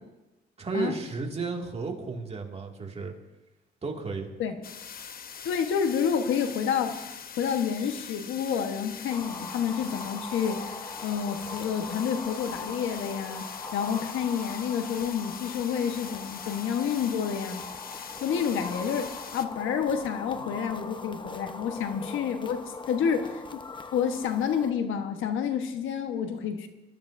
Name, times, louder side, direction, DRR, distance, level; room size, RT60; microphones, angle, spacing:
voice 1, 0.6-3.1 3.8-4.3, right 4 dB, 30° right, 1 dB, 2.2 m, -33 dB
sound 1, 4.6-19.5, left 7 dB, 50° left, 0.8 m, -43 dB
voice 2, 5.4-7.0 7.4-13.5 13.7-17.6 18.2-23.6 23.9-26.7, left 7 dB, 80° left, 7 dB, 1.2 m, -29 dB
sound 2, 9.1-24.7, left 3 dB, 25° left, 0.9 m, -41 dB
23.0 x 12.5 x 2.7 m, 1.0 s
cardioid pair, 90°, 20 cm